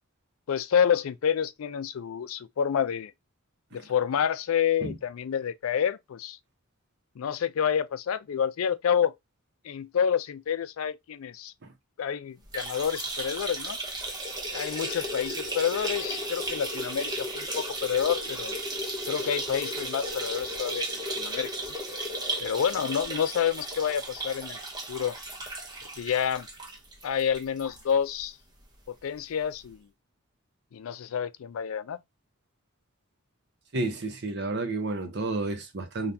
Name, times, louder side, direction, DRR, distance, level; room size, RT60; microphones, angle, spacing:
voice 1, 0.5-3.1 3.7-6.4 7.2-9.1 9.6-11.5 12.0-13.8 14.5-18.6 19.1-20.9 21.2-21.5 22.4-24.6 24.9-25.2 26.0-26.5 27.0-28.4 28.9-29.8 30.7-32.0, left 8 dB, 70° left, 0.4 m, -28 dB
sound 1, 12.4-27.8 28.2-28.3 28.6-28.7 29.7-29.8, right 1 dB, 20° right, 0.7 m, -34 dB
voice 2, 33.7-36.1, right 2 dB, 55° right, 0.7 m, -31 dB
3.4 x 2.3 x 2.6 m
head